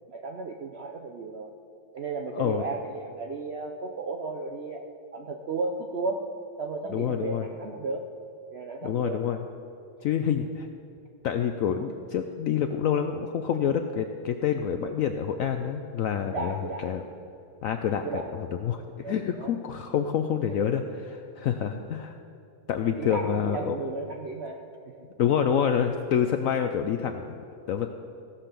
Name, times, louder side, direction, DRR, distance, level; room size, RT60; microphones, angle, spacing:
voice 1, 0.1-1.5 1.9-4.9 5.1-6.3 6.6-8.0 8.5-9.3 16.2-16.9 18.0-18.4 19.0-19.5 21.7-21.8 23.0-24.6 24.8-24.9, right 3 dB, 85° right, 3 dB, 0.5 m, -34 dB
voice 2, 2.3-2.6 6.9-7.5 8.8-9.4 10.0-10.7 11.2-17.0 17.6-18.1 18.3-22.2 22.7-23.8 25.2-27.4 27.7-27.9, left 8 dB, 90° left, 6 dB, 0.7 m, -27 dB
16.0 x 5.8 x 6.7 m, 2.7 s
omnidirectional pair, 2.0 m